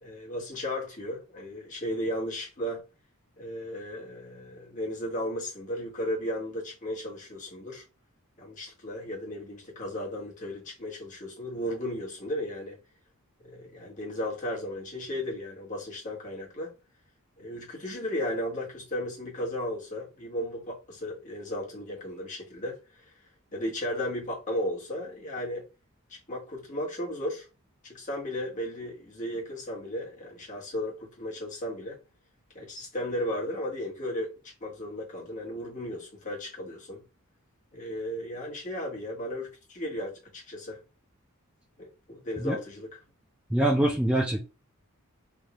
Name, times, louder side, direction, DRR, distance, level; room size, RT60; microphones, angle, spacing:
voice 1, 0.0-2.8 3.4-7.8 8.4-12.8 13.4-16.7 17.4-23.1 23.5-25.7 26.1-27.5 27.8-32.0 32.5-37.0 37.7-40.8 41.8-42.9, left 1 dB, 35° left, 1.4 m, -35 dB
voice 2, 43.5-44.4, right 1 dB, 5° right, 0.5 m, -24 dB
3.6 x 2.5 x 3.0 m
head